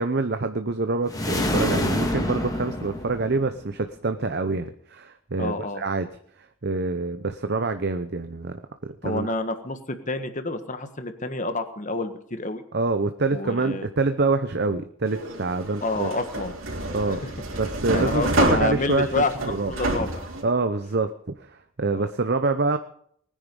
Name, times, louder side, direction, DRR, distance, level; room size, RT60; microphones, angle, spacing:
voice 1, 0.0-6.1 6.6-8.6 9.0-9.3 12.7-16.1 16.9-17.2 17.6-19.7 20.4-21.1 21.4-22.8, right 3 dB, 50° right, 8 dB, 0.8 m, -26 dB
sound 1, 1.1-3.7, left 1 dB, 15° left, 1.9 m, -26 dB
voice 2, 5.4-5.8 9.0-12.6 13.3-13.9 15.8-16.5 17.1-17.2 17.9-20.2 21.9-22.1, left 2 dB, 35° left, 9 dB, 1.5 m, -28 dB
sound 2, 15.1-20.4, right 1 dB, 70° right, 3.7 m, -28 dB
19.5 x 10.0 x 5.3 m, 0.64 s
head